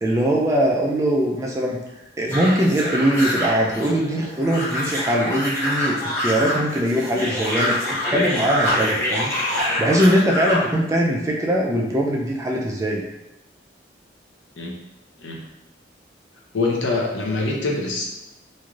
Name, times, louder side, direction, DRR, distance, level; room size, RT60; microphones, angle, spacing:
voice 1, 0.0-1.8 2.2-9.3 9.8-13.0, right 1 dB, 15° right, -2 dB, 0.3 m, -21 dB
sound 1, 2.3-10.7, left 1 dB, 15° left, 0.8 m, -25 dB
voice 2, 16.5-18.0, left 3 dB, 80° left, -1 dB, 0.6 m, -24 dB
3.1 x 2.5 x 2.4 m, 0.94 s
head